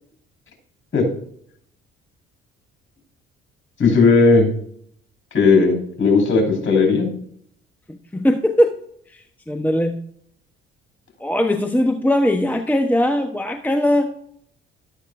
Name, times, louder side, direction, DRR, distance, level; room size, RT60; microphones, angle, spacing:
voice 1, 3.8-4.5 5.3-7.1, left 4 dB, 40° left, 2 dB, 4.7 m, -15 dB
voice 2, 7.9-8.8 9.1-10.0 11.2-14.1, left 1 dB, 5° left, 6 dB, 1.0 m, -20 dB
12.0 x 11.5 x 2.6 m, 0.65 s
hypercardioid pair, 50°, 30 cm